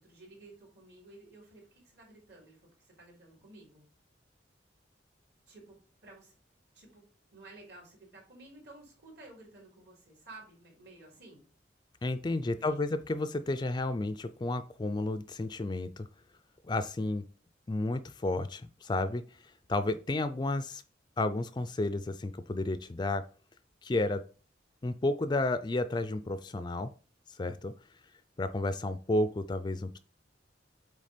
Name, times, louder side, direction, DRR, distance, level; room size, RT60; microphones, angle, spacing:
voice 1, 0.0-3.8 5.5-6.3 6.7-11.4 12.5-12.8, right 2 dB, 60° right, -2 dB, 3.8 m, -54 dB
voice 2, 12.0-16.1 16.6-17.2 17.7-19.4 19.7-20.8 21.2-23.3 23.8-24.2 24.8-26.9 27.4-27.7 28.4-30.0, left 2 dB, 25° left, 12 dB, 0.4 m, -32 dB
8.4 x 3.3 x 5.1 m, 0.36 s
head